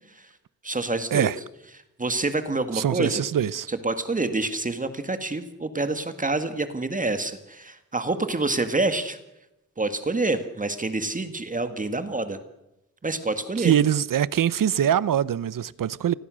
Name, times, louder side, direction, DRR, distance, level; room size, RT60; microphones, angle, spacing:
voice 1, 0.6-1.3 2.0-3.2 3.7-9.2 9.8-12.4 13.0-13.7, right 2 dB, 25° right, 1.8 m, -27 dB
voice 2, 2.7-3.7 13.6-16.1, right 9 dB, 85° right, 0.9 m, -23 dB
28.5 x 21.0 x 6.4 m
wide cardioid pair, 155°, 32 cm